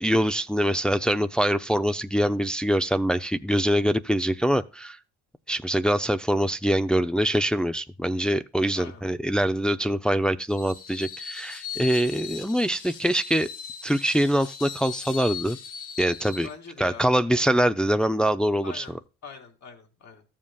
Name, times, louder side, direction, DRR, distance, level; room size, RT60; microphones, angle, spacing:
voice 1, 0.0-5.0 5.5-13.5 13.8-15.6 16.0-16.5 16.8-18.8, equal, 5° left, 0.5 m, -24 dB
Screech, 10.5-16.5, left 8 dB, 85° left, 1.6 m, -39 dB
voice 2, 16.4-17.1 18.6-19.0 19.2-20.2, left 5 dB, 65° left, 2.6 m, -43 dB
13.5 x 7.4 x 2.3 m
cardioid pair, 90°, 30 cm